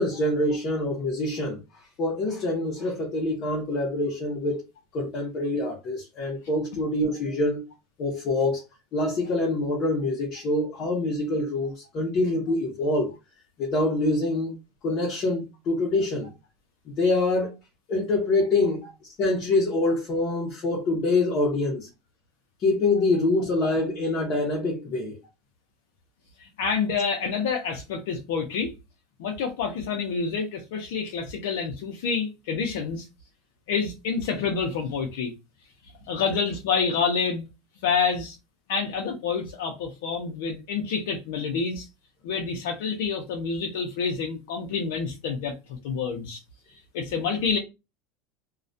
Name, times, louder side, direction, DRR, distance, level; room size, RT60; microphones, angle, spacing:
voice 1, 0.0-1.6 2.0-4.6 4.9-7.6 8.0-8.6 8.9-13.1 13.6-14.5 14.8-16.3 17.0-17.5 17.9-18.8 19.2-21.9 22.6-25.2, left 2 dB, 40° left, 0.7 m, -25 dB
voice 2, 26.4-28.7 29.2-33.0 33.7-35.3 36.1-37.5 37.8-38.4 38.7-41.9 42.2-46.4 46.9-47.6, left 5 dB, 75° left, 0.5 m, -28 dB
2.3 x 2.1 x 2.6 m
supercardioid pair, 135°, 0 cm